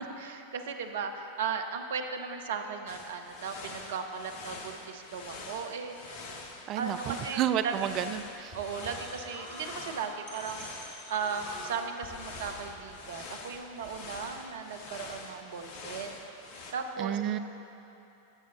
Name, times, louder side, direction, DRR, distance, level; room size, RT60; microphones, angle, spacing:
voice 1, 0.0-6.2 6.8-7.7 8.5-16.2 16.7-17.2, right 6 dB, 60° right, 6 dB, 0.7 m, -37 dB
sound 1, 2.9-16.7, left 3 dB, 50° left, 1.0 m, -45 dB
voice 2, 6.7-8.6 17.0-17.4, right 11 dB, 35° right, 11 dB, 0.3 m, -31 dB
sound 2, 7.8-14.5, left 1 dB, 35° left, 1.9 m, -48 dB
15.5 x 6.3 x 4.0 m, 2.9 s
figure-of-eight pair, 90°, 0 cm